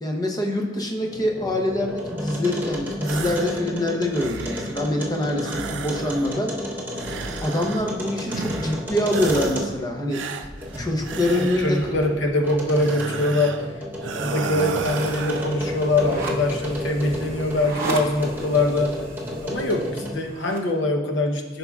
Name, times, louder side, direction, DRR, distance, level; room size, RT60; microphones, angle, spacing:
voice 1, 0.0-6.5 7.4-10.2 10.8-12.0, left 1 dB, 20° left, 2 dB, 0.7 m, -25 dB
sound 1, 1.0-10.0 10.4-17.7 18.2-20.3, left 1 dB, 10° right, 0.9 m, -32 dB
sound 2, 3.0-3.6 4.0-4.8 5.4-6.5 6.9-8.0 8.3-8.8 9.1-9.7 10.1-12.0 12.7-13.7 14.0-15.5, right 5 dB, 70° right, 0.4 m, -33 dB
voice 2, 11.3-13.7 14.0-18.9 19.4-21.6, left 2 dB, 70° left, 2 dB, 0.9 m, -23 dB
sound 3, 14.8-20.7, right 2 dB, 45° right, 0.9 m, -35 dB
11.0 x 5.5 x 2.4 m, 1.3 s
head